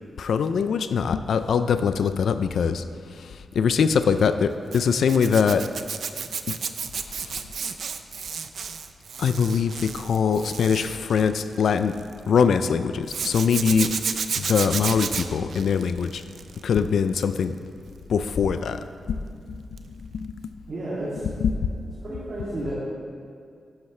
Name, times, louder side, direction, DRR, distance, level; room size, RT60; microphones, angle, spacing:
voice 1, 0.2-5.7 6.5-6.6 6.9-7.5 9.2-14.0 14.3-16.2 16.6-17.6 18.1-19.2 19.5-19.6 19.9-20.3 21.4-21.7, left 6 dB, 70° left, 10 dB, 0.4 m, -23 dB
Zipper (clothing), 4.7-12.1 13.1-16.7 17.1-17.4 19.8-19.9 20.2-20.3, right 6 dB, 60° right, 0.4 m, -32 dB
voice 2, 20.7-21.3 22.0-22.7, right 1 dB, 45° right, -9 dB, 2.4 m, -32 dB
11.5 x 10.5 x 3.2 m, 2.3 s
wide cardioid pair, 175°, 0 cm